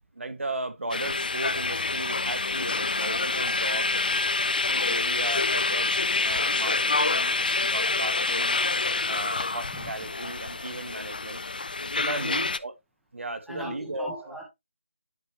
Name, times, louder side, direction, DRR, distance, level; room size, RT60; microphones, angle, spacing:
voice 1, 0.1-3.9 4.7-6.0 6.2-7.4 7.6-8.6 9.1-11.4 12.0-12.8 13.1-14.4, right 2 dB, 80° right, 1.7 m, -36 dB
sound 1, 0.9-12.6, left 3 dB, 45° left, 0.4 m, -27 dB
voice 2, 11.9-12.5 13.5-14.4, equal, ahead, 0.6 m, -40 dB
9.8 x 4.8 x 2.8 m
figure-of-eight pair, 175°, 7 cm